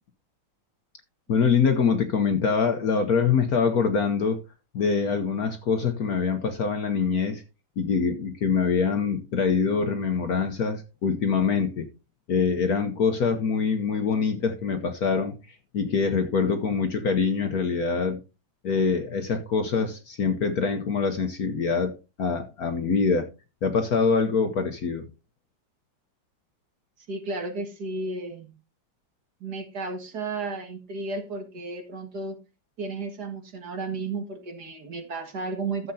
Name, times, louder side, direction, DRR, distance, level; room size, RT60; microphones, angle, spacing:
voice 1, 1.3-4.4 4.7-7.4 7.8-11.9 12.3-15.3 15.7-18.2 18.6-23.3 23.6-25.1, left 5 dB, 55° left, 1.2 m, -24 dB
voice 2, 27.1-28.5 29.4-32.4 32.8-35.9, right 3 dB, 50° right, 2.2 m, -33 dB
13.5 x 7.7 x 2.7 m
omnidirectional pair, 2.3 m